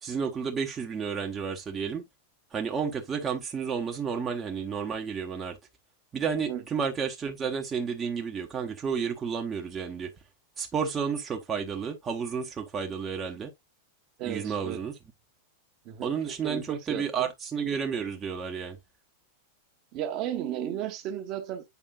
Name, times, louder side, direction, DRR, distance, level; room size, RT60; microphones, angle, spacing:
voice 1, 0.0-2.1 2.5-5.6 6.1-10.1 10.6-13.5 14.3-14.9 16.0-18.8, right 6 dB, 20° right, 0.9 m, -31 dB
voice 2, 14.2-14.8 15.8-16.1 16.4-17.0 19.9-21.6, right 11 dB, 40° right, 1.1 m, -34 dB
8.2 x 5.4 x 2.3 m
figure-of-eight pair, 90°, 0 cm